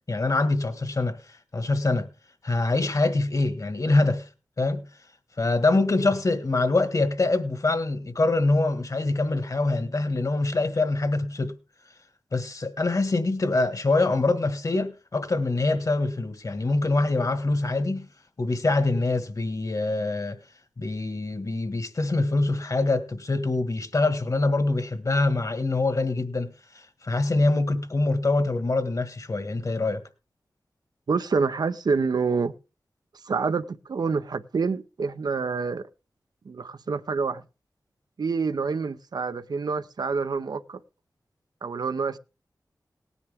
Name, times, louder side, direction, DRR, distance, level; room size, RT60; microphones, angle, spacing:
voice 1, 0.1-2.1 2.4-4.3 4.6-4.9 5.4-11.5 12.3-18.1 18.4-20.4 20.8-30.0, left 2 dB, 50° left, 1.7 m, -24 dB
voice 2, 31.1-32.6 33.3-35.9 36.5-37.4 38.2-40.8 41.6-42.2, right 4 dB, 70° right, 0.7 m, -27 dB
18.5 x 9.9 x 3.5 m
wide cardioid pair, 65°, 7 cm